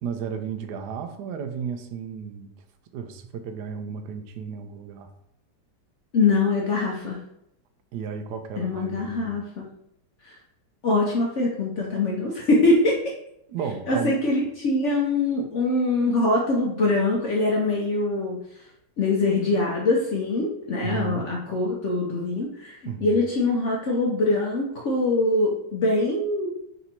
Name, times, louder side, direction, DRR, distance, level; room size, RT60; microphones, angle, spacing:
voice 1, 0.0-2.5 2.9-5.1 7.9-9.3 13.5-14.5 20.8-21.3 22.8-23.2, right 6 dB, 75° right, 7 dB, 1.1 m, -33 dB
voice 2, 6.1-7.2 8.6-9.6 10.8-13.0 13.9-18.4 19.0-26.5, left 2 dB, 60° left, -2 dB, 0.8 m, -23 dB
4.0 x 2.6 x 4.2 m, 0.79 s
omnidirectional pair, 1.9 m